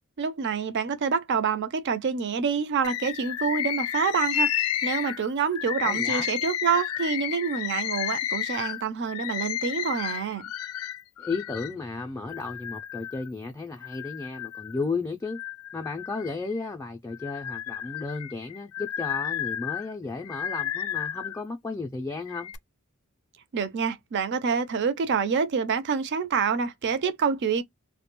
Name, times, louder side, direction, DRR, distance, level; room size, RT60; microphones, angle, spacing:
voice 1, 0.2-10.4 23.5-27.6, right 6 dB, 55° right, 0.4 m, -27 dB
Bird, 2.8-11.8 12.3-13.3 13.8-14.8 15.3-16.6 17.1-21.4 22.1-22.6, left 11 dB, 85° left, 0.4 m, -32 dB
voice 2, 5.8-6.3 11.2-15.4 15.7-22.5, left 3 dB, 15° left, 0.3 m, -34 dB
2.2 x 2.1 x 2.8 m
head